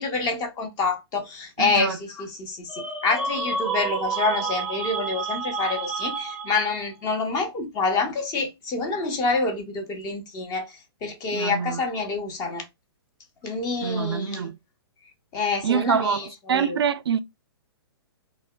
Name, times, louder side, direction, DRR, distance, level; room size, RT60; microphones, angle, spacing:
voice 1, 0.0-10.7 11.0-12.7 13.4-14.5 15.3-16.8, left 3 dB, 25° left, 0.8 m, -27 dB
voice 2, 1.6-2.0 11.3-11.8 13.8-14.6 15.6-17.2, right 7 dB, 75° right, 0.4 m, -25 dB
sound 1, 2.7-6.9, right 4 dB, 5° right, 0.5 m, -30 dB
3.4 x 2.2 x 2.2 m
figure-of-eight pair, 120°, 13 cm